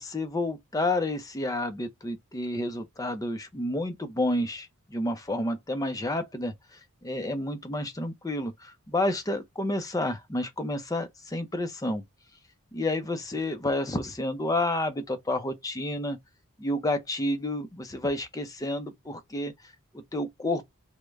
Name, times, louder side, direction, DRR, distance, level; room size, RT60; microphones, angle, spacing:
voice 1, 0.0-12.0 12.7-16.2 16.6-20.6, left 1 dB, 15° left, 0.5 m, -30 dB
3.2 x 2.1 x 3.4 m
head